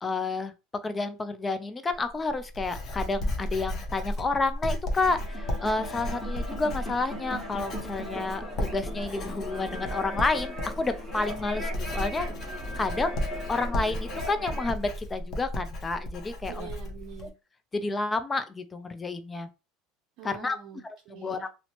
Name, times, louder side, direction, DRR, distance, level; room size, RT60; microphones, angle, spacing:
voice 1, 0.0-0.5 0.8-12.3 12.8-13.1 13.5-16.7 17.2-17.3 17.7-19.5 20.2-20.6 21.1-21.5, left 3 dB, 20° left, 0.4 m, -30 dB
Writing, 1.9-17.3, equal, 45° left, 0.7 m, -34 dB
sound 1, 4.9-14.7, equal, ahead, 1.3 m, -39 dB
voice 2, 16.5-17.3 20.2-21.5, right 9 dB, 55° right, 0.5 m, -45 dB
2.8 x 2.0 x 2.8 m
supercardioid pair, 115°, 0 cm